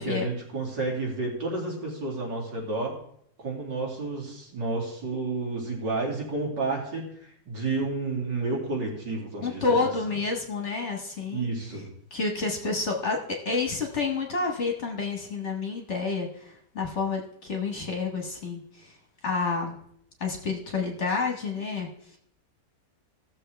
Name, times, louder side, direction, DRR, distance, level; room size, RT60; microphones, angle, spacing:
voice 1, 0.0-3.0 3.4-9.9 11.3-11.9, right 3 dB, 75° right, -2 dB, 3.1 m, -31 dB
voice 2, 9.4-11.5 12.1-19.0 19.2-19.8 20.2-22.2, left 4 dB, 45° left, 1 dB, 1.4 m, -29 dB
15.5 x 6.9 x 3.3 m, 0.68 s
omnidirectional pair, 1.9 m